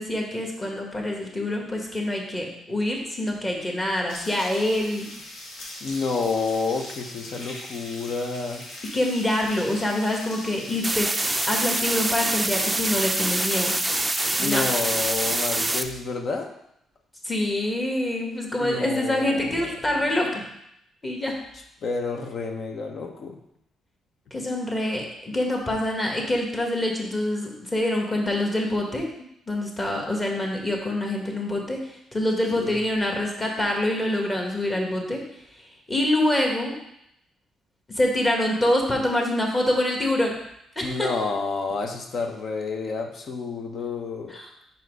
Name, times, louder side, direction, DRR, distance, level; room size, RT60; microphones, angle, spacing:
voice 1, 0.0-5.1 8.9-11.1 11.5-13.7 14.4-14.6 17.2-20.4 21.0-21.4 24.3-29.1 29.5-35.2 35.9-36.8 37.9-40.4 40.7-41.1 44.3-44.5, left 1 dB, 25° left, 0 dB, 1.6 m, -25 dB
sound 1, 4.1-15.3, left 1 dB, 85° left, 1.7 m, -40 dB
voice 2, 5.8-8.7 14.4-16.5 18.6-20.1 21.8-23.4 32.5-32.8 40.8-44.4, left 4 dB, 55° left, 4 dB, 0.9 m, -29 dB
sound 2, 10.8-15.8, right 2 dB, 10° right, 0.4 m, -25 dB
5.3 x 4.7 x 4.7 m, 0.78 s
cardioid pair, 90°, 0 cm